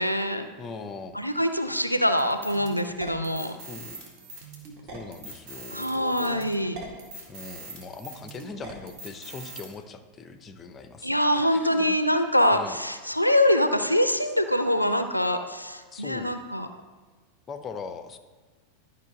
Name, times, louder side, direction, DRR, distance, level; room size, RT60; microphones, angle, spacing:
voice 1, 0.0-0.5 1.1-3.6 5.7-6.8 11.0-16.7, left 1 dB, 90° left, 8 dB, 0.5 m, -24 dB
voice 2, 0.6-1.2 3.7-4.0 4.9-6.5 7.3-12.0 12.5-12.8 15.9-16.4 17.5-18.2, left 4 dB, 20° left, 9 dB, 0.7 m, -40 dB
sound 1, 2.2-9.7, right 3 dB, 45° right, 1.9 m, -42 dB
11.5 x 5.7 x 3.9 m, 1.4 s
figure-of-eight pair, 90°, 0 cm